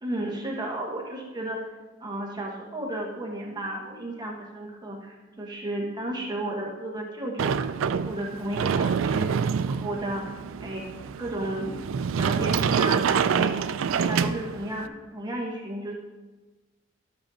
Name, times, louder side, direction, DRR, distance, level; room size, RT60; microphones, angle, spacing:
voice 1, 0.0-1.6 2.0-10.2 10.6-10.8 11.2-11.7 12.2-13.6 13.9-15.9, right 1 dB, 20° right, -2 dB, 1.1 m, -33 dB
Sliding door, 7.4-14.9, right 6 dB, 75° right, 0.3 m, -26 dB
13.0 x 7.9 x 2.7 m, 1.2 s
head